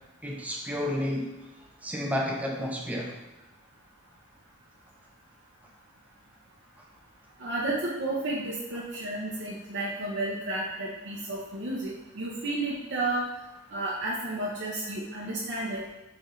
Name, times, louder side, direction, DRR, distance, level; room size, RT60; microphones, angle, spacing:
voice 1, 0.2-1.3 1.8-3.1, left 1 dB, 5° right, 0 dB, 0.5 m, -31 dB
voice 2, 7.4-13.3 13.7-15.8, right 2 dB, 55° right, -5 dB, 0.7 m, -32 dB
4.2 x 3.2 x 3.7 m, 1.0 s
head